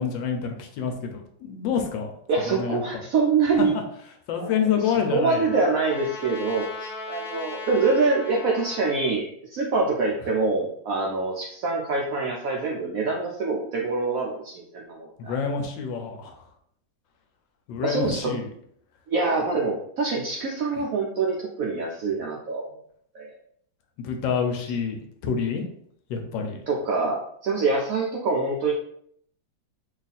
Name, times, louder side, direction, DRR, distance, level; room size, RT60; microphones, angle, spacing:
voice 1, 0.0-2.1 2.6-2.8 3.6-3.7 4.3-5.5 15.2-16.3 17.7-18.5 20.7-20.8 24.0-25.6 26.1-26.6, left 6 dB, 80° left, 4 dB, 1.3 m, -27 dB
voice 2, 2.3-3.8 4.4-4.5 4.8-15.3 17.8-18.3 19.1-22.7 23.1-23.3 26.7-28.7, right 4 dB, 80° right, -2 dB, 0.7 m, -25 dB
Trumpet, 4.4-9.1, left 3 dB, 60° left, 1.1 m, -38 dB
3.1 x 2.4 x 4.0 m, 0.66 s
omnidirectional pair, 2.1 m